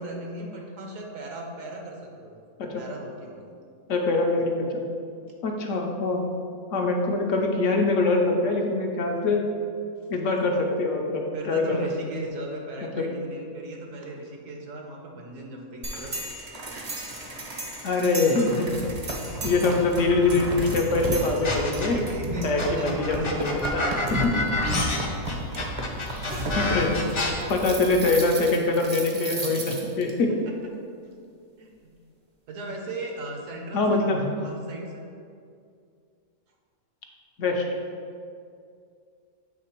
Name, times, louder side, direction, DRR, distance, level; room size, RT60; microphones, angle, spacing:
voice 1, 0.0-2.4 2.8-3.5 11.3-16.2 21.9-24.8 30.5-30.6 31.6-31.9 32.5-35.1, right 1 dB, 65° right, 1 dB, 1.2 m, -37 dB
voice 2, 3.9-4.9 5.4-6.3 6.7-9.4 10.1-12.2 13.0-13.1 17.8-18.7 19.4-22.0 22.4-23.8 26.0-30.3 33.7-34.3 37.4-37.6, left 3 dB, 70° left, 2 dB, 0.9 m, -24 dB
sound 1, 15.8-30.1, right 1 dB, 40° right, 0.6 m, -33 dB
sound 2, 21.4-22.1 22.6-27.3, left 2 dB, 40° left, 0.4 m, -28 dB
7.4 x 3.2 x 4.4 m, 2.3 s
omnidirectional pair, 1.5 m